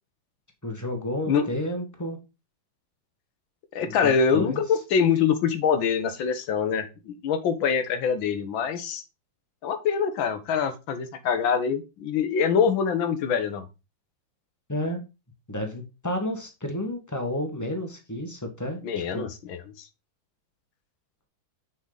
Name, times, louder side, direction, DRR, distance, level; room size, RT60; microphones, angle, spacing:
voice 1, 0.6-2.2 3.8-4.6 14.7-15.0 15.5-19.3, left 1 dB, 10° left, 3 dB, 1.3 m, -31 dB
voice 2, 3.7-9.0 9.6-13.6 18.8-19.6, left 6 dB, 75° left, 10 dB, 1.7 m, -24 dB
6.4 x 5.6 x 3.9 m, 0.28 s
omnidirectional pair, 2.2 m